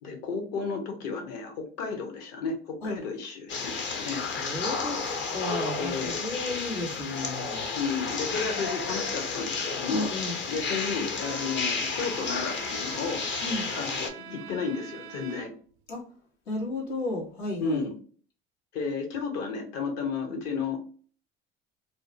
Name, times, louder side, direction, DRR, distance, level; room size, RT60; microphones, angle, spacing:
voice 1, 0.0-4.2 5.8-6.2 7.8-10.1 10.5-13.2 13.7-15.5 17.6-18.0 18.7-20.8, left 5 dB, 55° left, 4 dB, 1.0 m, -32 dB
sound 1, 3.5-14.1, left 4 dB, 35° left, 0.6 m, -32 dB
voice 2, 4.4-7.6 8.3-8.6 9.9-10.4 13.4-13.7 15.9-16.0 16.5-17.9, left 2 dB, 80° left, -2 dB, 1.2 m, -34 dB
Bowed string instrument, 11.1-15.8, right 10 dB, 75° right, 0.5 m, -44 dB
2.6 x 2.1 x 2.7 m, 0.43 s
hypercardioid pair, 65°, 31 cm